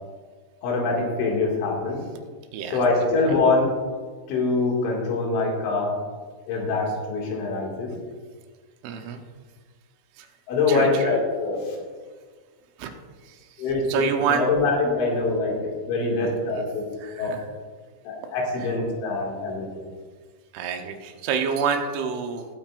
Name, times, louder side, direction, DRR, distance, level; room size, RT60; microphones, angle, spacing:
voice 1, 0.6-2.0 2.7-3.7 4.3-6.0 6.5-7.9 10.5-11.8 13.6-15.6 15.9-16.9 17.2-17.3 18.0-19.8, left 3 dB, 85° left, -2 dB, 4.6 m, -24 dB
voice 2, 2.5-3.4 8.8-9.2 10.2-10.3 10.7-11.2 12.8-12.9 13.2-14.5 16.5-16.7 17.0-17.5 18.6-18.7 20.5-22.5, right 6 dB, 90° right, 4 dB, 3.4 m, -29 dB
20.0 x 9.1 x 2.5 m, 1.5 s
omnidirectional pair, 5.3 m